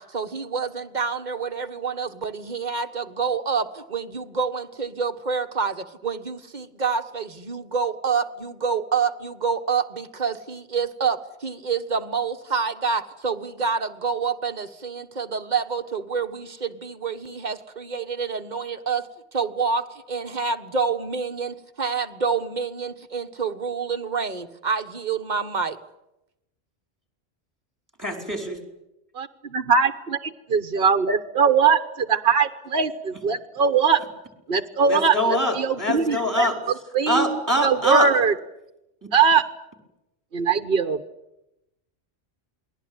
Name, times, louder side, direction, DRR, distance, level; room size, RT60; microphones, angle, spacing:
voice 1, 0.0-19.0 19.3-25.8, right 5 dB, 45° right, 7 dB, 1.5 m, -27 dB
voice 2, 28.0-28.6 34.8-36.5 37.1-38.1 39.0-39.1, equal, 15° right, 4 dB, 4.8 m, -24 dB
voice 3, 29.1-34.0 34.5-36.5 36.9-38.3 39.1-39.4 40.3-41.0, right 5 dB, 60° right, 8 dB, 1.3 m, -21 dB
28.5 x 20.5 x 9.0 m, 0.90 s
omnidirectional pair, 1.1 m